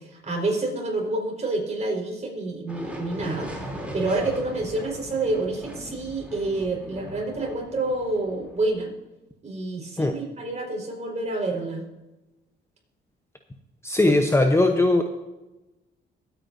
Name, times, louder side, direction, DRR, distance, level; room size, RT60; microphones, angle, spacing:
voice 1, 0.0-3.5 3.9-8.9 9.4-11.8 14.0-14.2, right 2 dB, 35° right, -1 dB, 4.7 m, -28 dB
sound 1, 2.7-8.8, equal, 5° right, 3.3 m, -39 dB
voice 2, 13.8-15.0, left 2 dB, 15° left, 5 dB, 0.9 m, -19 dB
22.5 x 8.9 x 2.7 m, 1.0 s
cardioid pair, 90°, 20 cm